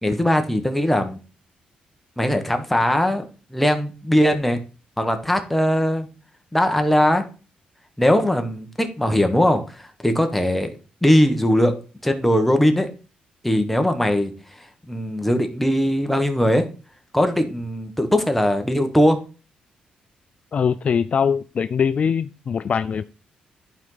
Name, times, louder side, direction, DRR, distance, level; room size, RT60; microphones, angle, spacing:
voice 1, 0.0-1.2 2.2-4.6 5.0-6.1 6.5-7.2 8.0-10.7 11.0-11.7 12.0-12.9 13.4-16.7 17.1-19.2, equal, 5° left, 1.4 m, -20 dB
voice 2, 20.5-23.0, left 7 dB, 50° left, 0.3 m, -22 dB
10.5 x 4.5 x 3.9 m
cardioid pair, 80°, 3 cm